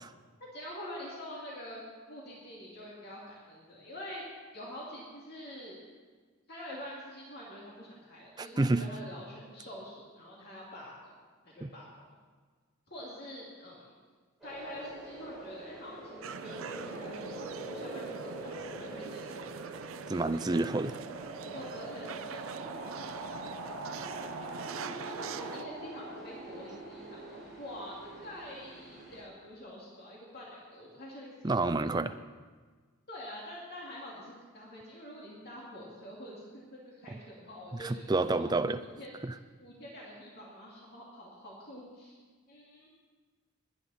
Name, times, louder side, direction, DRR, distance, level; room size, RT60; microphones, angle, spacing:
voice 1, 0.5-1.8 2.1-4.2 4.5-5.8 6.5-11.1 11.5-11.9 12.9-14.0 14.4-19.6 21.4-22.9 23.3-23.5 23.8-24.4 24.9-31.6 33.1-39.1 39.6-42.2 42.5-42.9, equal, 45° left, -5 dB, 2.5 m, -46 dB
voice 2, 8.4-8.8 11.6-11.7 20.1-21.0 31.4-32.2 37.8-38.8 39.2-39.3, right 2 dB, 20° right, 11 dB, 0.4 m, -29 dB
sound 1, 14.4-29.2, right 2 dB, ahead, 4.2 m, -43 dB
sound 2, 16.2-25.6, right 6 dB, 70° right, 0.5 m, -44 dB
21.0 x 9.8 x 4.2 m, 1.5 s
head